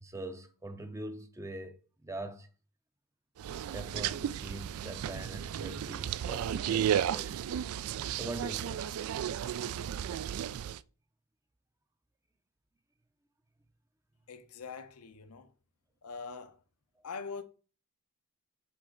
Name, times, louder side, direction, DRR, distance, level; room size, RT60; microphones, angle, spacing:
voice 1, 0.0-2.5 3.7-7.6 8.1-8.8, right 1 dB, 15° right, 0.5 m, -43 dB
sound 1, 3.4-10.8, right 9 dB, 75° right, 0.3 m, -34 dB
voice 2, 14.3-15.5 16.0-16.6 17.0-17.4, left 5 dB, 90° left, 0.8 m, -43 dB
7.3 x 4.2 x 3.8 m
head